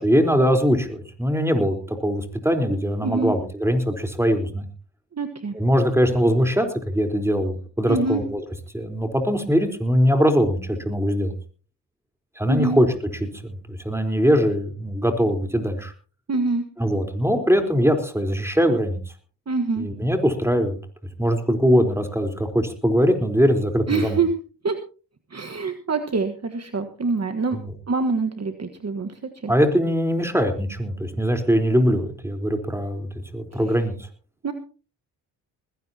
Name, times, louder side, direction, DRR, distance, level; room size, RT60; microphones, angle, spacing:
voice 1, 0.0-4.7 5.5-8.4 8.7-11.3 12.4-12.9 13.4-15.9 16.8-19.0 19.8-20.8 21.2-24.2 27.5-27.7 29.5-34.1, equal, 5° right, 6 dB, 4.0 m, -21 dB
voice 2, 3.0-3.4 5.1-5.6 7.9-8.2 12.5-12.8 16.3-16.6 19.5-19.9 23.9-24.3 24.6-24.8 25.3-27.6 27.9-29.5 34.4-34.5, right 4 dB, 40° right, 6 dB, 1.5 m, -25 dB
20.0 x 17.0 x 2.9 m, 0.37 s
supercardioid pair, 55°, 41 cm